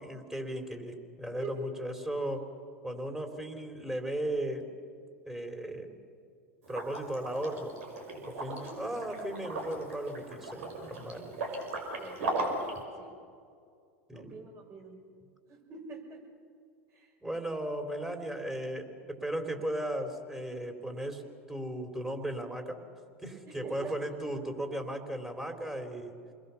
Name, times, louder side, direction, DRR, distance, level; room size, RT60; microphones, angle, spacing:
voice 1, 0.0-2.5 2.8-4.7 5.3-6.0 6.7-7.7 8.1-11.3 14.1-14.4 17.2-21.2 21.5-22.8 23.2-26.1, right 1 dB, 5° right, 4 dB, 3.5 m, -36 dB
Liquid, 6.6-12.8, right 2 dB, 75° right, 5.5 m, -37 dB
voice 2, 8.4-8.8 11.9-12.4 12.9-13.2 14.1-15.0 15.5-16.2 16.9-17.1 23.4-24.0, right 5 dB, 40° right, 1 dB, 6.0 m, -45 dB
28.0 x 21.0 x 7.1 m, 2.3 s
hypercardioid pair, 95°, 7 cm